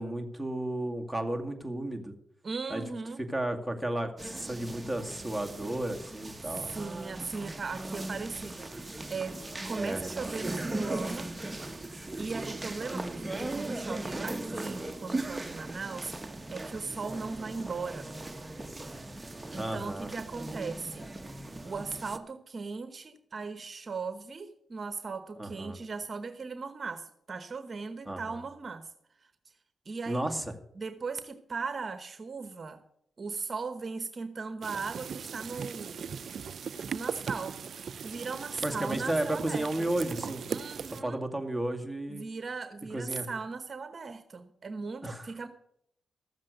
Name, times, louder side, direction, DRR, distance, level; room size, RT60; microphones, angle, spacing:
voice 1, 0.0-2.1 2.7-2.8 3.3-6.7 9.8-10.0 19.5-20.1 25.4-25.8 28.1-28.4 30.1-30.5 38.6-40.4 41.0-42.3 42.9-43.3 45.0-45.3, right 1 dB, ahead, 2 dB, 2.2 m, -33 dB
voice 2, 2.4-3.2 6.5-11.3 12.2-16.1 16.5-18.1 19.5-21.0 21.6-28.9 29.8-30.2 30.8-32.8 33.2-36.0 36.9-37.6 38.0-39.9 40.5-41.2 42.1-45.5, right 4 dB, 45° right, 10 dB, 1.0 m, -38 dB
sound 1, 4.2-22.2, right 2 dB, 20° right, 1.1 m, -38 dB
sound 2, 34.6-41.0, right 6 dB, 65° right, 0.4 m, -38 dB
14.0 x 7.4 x 7.9 m, 0.73 s
cardioid pair, 60°, 0 cm